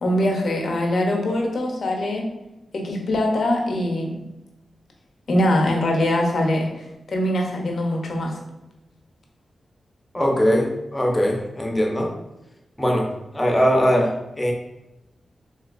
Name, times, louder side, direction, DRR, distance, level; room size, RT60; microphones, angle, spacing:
voice 1, 0.0-2.3 2.7-4.2 5.3-8.3, left 1 dB, 70° left, 1 dB, 0.7 m, -22 dB
voice 2, 10.1-12.1 12.8-13.1 13.3-14.5, equal, 20° left, 0 dB, 0.8 m, -20 dB
3.7 x 2.7 x 2.5 m, 0.93 s
cardioid pair, 45°, 0 cm